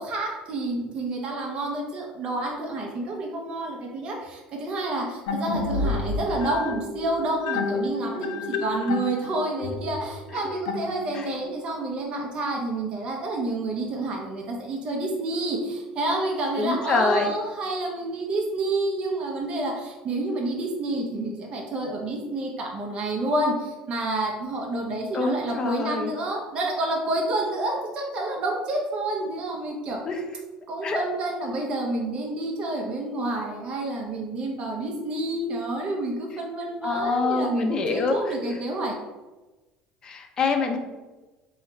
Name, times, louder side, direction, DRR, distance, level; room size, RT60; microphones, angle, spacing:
voice 1, 0.0-30.0 30.7-39.0, right 2 dB, 40° right, -1 dB, 0.7 m, -29 dB
sound 1, 5.3-11.4, left 3 dB, 90° left, 0.4 m, -30 dB
voice 2, 16.6-17.3 25.1-26.1 30.0-30.3 30.8-31.0 36.8-38.6 40.0-40.8, left 3 dB, 30° left, 4 dB, 0.5 m, -25 dB
3.0 x 2.3 x 4.3 m, 1.2 s
cardioid pair, 130°, 3 cm